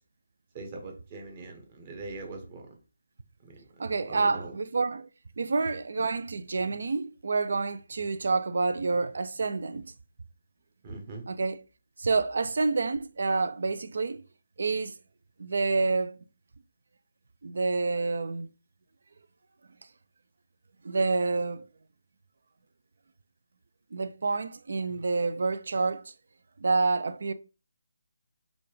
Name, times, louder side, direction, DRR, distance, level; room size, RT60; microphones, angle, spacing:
voice 1, 0.5-2.7 3.4-3.6 3.9-4.5 10.8-11.2, right 3 dB, 35° right, 1.0 m, -42 dB
voice 2, 3.8-5.1 5.4-9.9 11.3-11.6 12.0-14.2 14.6-14.9 15.4-16.2 17.4-18.5 20.8-21.7 23.9-26.1 26.6-27.3, right 3 dB, 60° right, 0.4 m, -28 dB
4.0 x 2.3 x 3.2 m
figure-of-eight pair, 150°, 0 cm